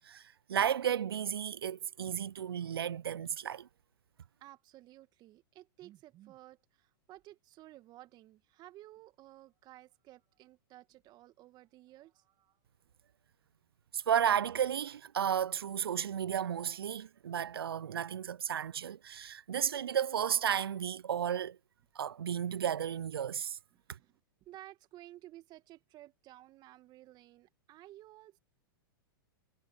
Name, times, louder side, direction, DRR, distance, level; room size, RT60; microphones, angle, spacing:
voice 1, 0.0-3.7 13.9-21.6 22.0-23.6, right 9 dB, 85° right, 0.4 m, -33 dB
voice 2, 4.4-12.6 23.7-28.4, right 15 dB, 35° right, 2.1 m, -55 dB
hypercardioid pair, 115°, 12 cm